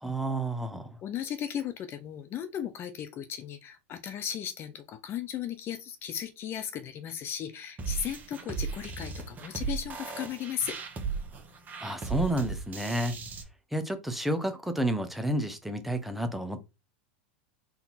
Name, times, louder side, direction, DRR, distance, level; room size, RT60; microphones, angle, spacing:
voice 1, 0.0-0.9 11.8-13.1 13.7-16.6, right 1 dB, 5° right, 0.8 m, -30 dB
voice 2, 1.0-10.8, left 9 dB, 40° left, 0.6 m, -36 dB
sound 1, 7.8-13.4, right 5 dB, 25° right, 1.2 m, -36 dB
3.9 x 2.8 x 4.0 m
hypercardioid pair, 100°, 6 cm